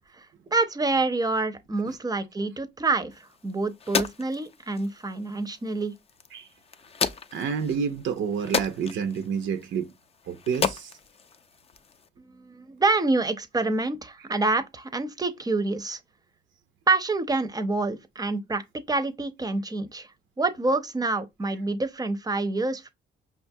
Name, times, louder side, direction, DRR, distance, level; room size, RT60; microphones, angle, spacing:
voice 1, 0.5-3.1 3.4-5.9 12.3-16.0 16.9-20.1 20.4-22.9, right 3 dB, 20° right, 0.6 m, -27 dB
sound 1, 3.1-12.1, left 6 dB, 30° left, 0.4 m, -34 dB
voice 2, 7.3-9.9 10.3-10.9, right 6 dB, 70° right, 0.6 m, -29 dB
5.3 x 2.3 x 2.6 m
cardioid pair, 90°, 20 cm